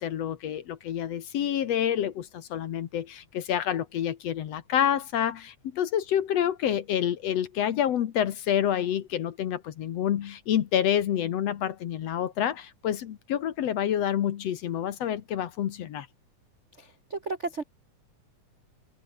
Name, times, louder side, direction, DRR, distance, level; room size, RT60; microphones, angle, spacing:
voice 1, 0.0-16.1, left 10 dB, 60° left, 2.1 m, -28 dB
voice 2, 16.7-17.6, right 3 dB, 40° right, 0.9 m, -34 dB
omnidirectional pair, 3.6 m